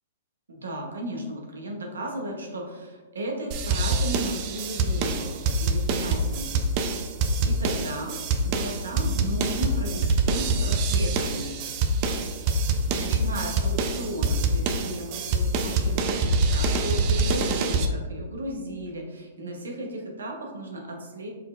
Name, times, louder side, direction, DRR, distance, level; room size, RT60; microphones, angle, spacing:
voice 1, 0.5-6.5 7.4-11.5 12.8-21.3, right 1 dB, 90° right, 1 dB, 0.9 m, -35 dB
sound 1, 3.5-17.9, right 2 dB, 40° right, 0.5 m, -25 dB
4.5 x 4.2 x 2.5 m, 1.3 s
hypercardioid pair, 130°, 0 cm